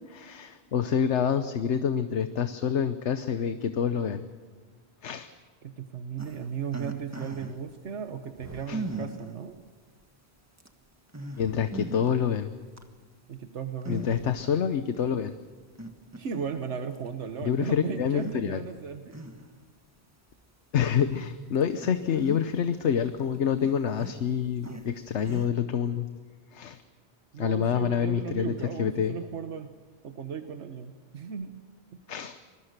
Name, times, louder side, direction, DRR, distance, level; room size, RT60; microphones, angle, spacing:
voice 1, 0.1-4.2 5.0-5.3 8.7-8.8 11.4-12.5 13.9-15.3 17.4-18.6 20.7-26.1 26.5-26.8 27.4-28.5 28.8-29.2 32.1-32.4, left 8 dB, 85° left, 10 dB, 1.2 m, -27 dB
voice 2, 5.6-9.6 13.3-14.3 16.2-19.2 27.3-29.7 30.0-31.5 31.9-32.0, right 7 dB, 85° right, 7 dB, 1.4 m, -36 dB
sound 1, 6.2-7.6 8.4-9.3 10.0-10.1 10.6-10.7 11.1-12.1 12.5-12.8 13.8-14.5 14.9-15.0 15.8-16.6 16.9-17.1 18.1-18.4 18.8-19.7 20.3-20.4 21.0-21.2 21.6-22.7 23.0-25.5, right 1 dB, 15° right, 1.6 m, -39 dB
25.5 x 20.5 x 6.7 m, 1.5 s
omnidirectional pair, 1.2 m